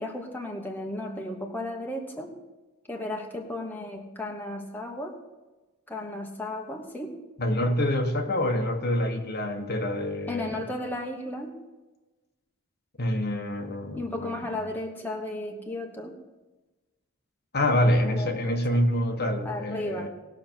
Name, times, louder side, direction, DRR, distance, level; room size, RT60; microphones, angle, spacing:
voice 1, 0.0-2.3 2.9-5.2 5.9-7.2 10.3-11.6 13.9-16.2 18.0-18.8 19.4-20.1, left 1 dB, 10° left, 1 dB, 1.2 m, -34 dB
voice 2, 7.4-10.6 13.0-14.6 17.5-20.1, left 1 dB, 45° left, 4 dB, 1.2 m, -26 dB
19.5 x 6.4 x 4.5 m, 1.1 s
head